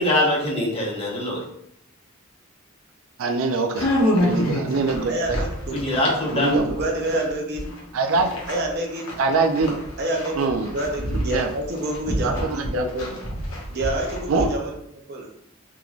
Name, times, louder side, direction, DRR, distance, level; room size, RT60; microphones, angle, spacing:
voice 1, 0.0-1.4 5.7-6.8, left 1 dB, 30° left, -2 dB, 0.8 m, -23 dB
voice 2, 3.2-5.1 6.3-6.7 7.9-8.3 9.2-9.8 10.4-10.7 11.0-11.5 12.2-12.8 14.3-14.5, right 3 dB, 85° right, 5 dB, 0.4 m, -23 dB
sound 1, 3.8-7.8 8.1-14.5, equal, 85° left, 1.0 m, -27 dB
voice 3, 5.1-6.0 6.6-7.7 8.5-9.1 10.0-13.2 13.7-14.7 15.1-15.3, right 1 dB, 50° right, 1 dB, 0.7 m, -28 dB
3.7 x 3.0 x 2.4 m, 0.72 s
head